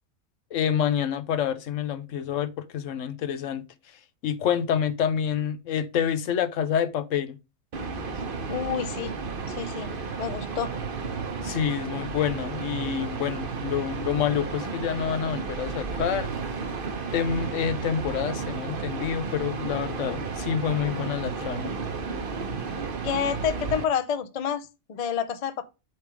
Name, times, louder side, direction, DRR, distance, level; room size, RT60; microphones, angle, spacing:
voice 1, 0.5-3.6 4.2-7.4 11.4-16.3 17.1-21.7, left 8 dB, 75° left, 1.0 m, -27 dB
sound 1, 7.7-23.8, right 5 dB, 45° right, 1.0 m, -32 dB
voice 2, 8.5-9.1 9.5-9.9 10.2-10.7 23.0-25.6, left 8 dB, 45° left, 0.5 m, -29 dB
7.5 x 3.5 x 4.6 m
omnidirectional pair, 1.3 m